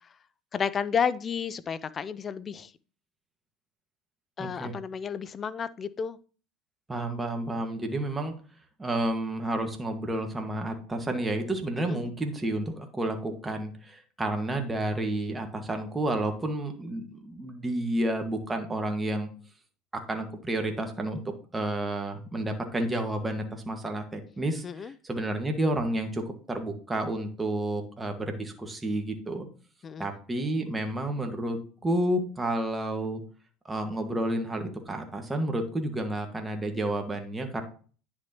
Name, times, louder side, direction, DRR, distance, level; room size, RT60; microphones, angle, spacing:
voice 1, 0.5-2.7 4.4-6.2 11.9-12.0 24.6-24.9 29.8-30.1, left 6 dB, 30° left, 0.5 m, -31 dB
voice 2, 4.4-4.7 6.9-8.4 8.8-19.3 20.1-21.2 21.5-29.5 30.0-33.2 33.7-37.6, right 1 dB, 15° right, 1.7 m, -30 dB
9.9 x 6.3 x 3.0 m
supercardioid pair, 95°, 0 cm